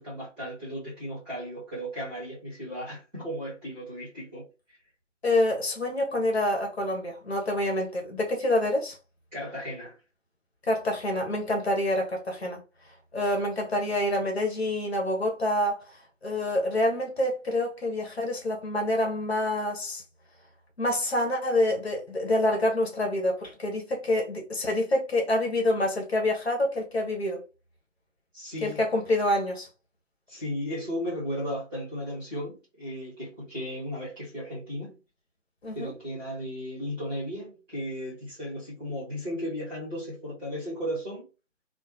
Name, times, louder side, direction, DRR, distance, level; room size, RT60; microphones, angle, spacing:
voice 1, 0.0-4.8 9.3-9.9 28.3-28.8 30.3-35.0 35.7-41.3, equal, 5° right, 0.9 m, -35 dB
voice 2, 5.2-9.0 10.6-12.6 13.1-15.8 16.2-20.0 20.8-27.4 28.6-29.7 35.6-35.9, left 1 dB, 55° left, 1.3 m, -27 dB
3.4 x 2.1 x 2.8 m
figure-of-eight pair, 150°, 38 cm